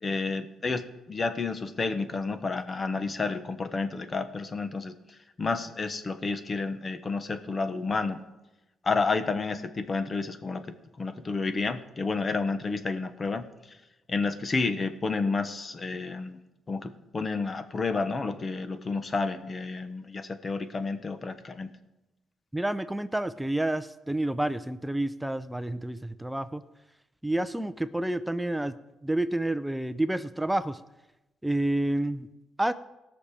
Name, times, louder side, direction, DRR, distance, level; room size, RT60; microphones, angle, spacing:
voice 1, 0.0-8.2 8.8-10.6 11.0-13.8 14.1-16.4 16.7-21.7, left 4 dB, 35° left, 10 dB, 1.2 m, -30 dB
voice 2, 22.5-26.6 27.2-28.7 29.0-30.8 31.4-32.3 32.6-32.7, right 1 dB, 5° right, 12 dB, 0.6 m, -29 dB
17.5 x 6.7 x 5.0 m, 0.97 s
cardioid pair, 90°, 0 cm